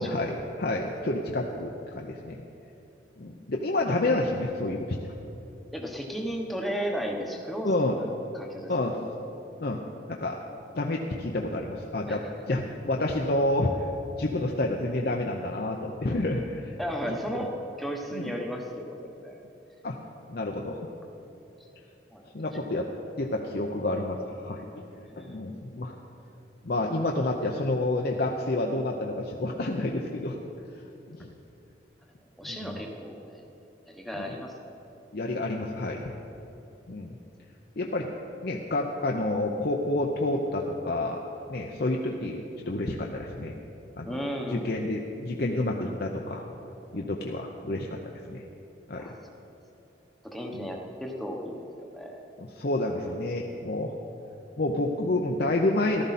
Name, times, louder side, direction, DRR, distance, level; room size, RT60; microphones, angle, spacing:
voice 1, 0.0-2.4 3.2-5.1 7.6-8.0 8.7-9.0 9.6-9.8 10.1-10.4 10.8-13.8 14.2-16.7 17.1-17.2 18.1-18.3 19.8-20.0 20.3-20.8 22.3-22.9 23.2-24.6 25.2-25.9 26.6-30.4 31.2-31.3 32.4-32.8 34.1-34.3 35.1-36.0 36.9-37.1 37.8-38.1 38.4-41.2 41.5-43.5 44.0-44.2 44.5-46.5 46.9-48.0 48.3-48.4 48.9-49.1 50.5-50.7 52.4-53.9 54.6-56.0, left 2 dB, 55° left, 0 dB, 0.7 m, -29 dB
voice 2, 5.7-8.0 8.3-9.0 12.1-12.3 16.8-17.5 17.8-19.4 22.1-22.3 25.0-25.4 32.4-33.4 33.9-34.5 44.0-44.6 46.9-47.1 49.0-49.1 50.2-52.2, equal, ahead, 0 dB, 1.1 m, -35 dB
14.5 x 12.5 x 4.2 m, 3.0 s
head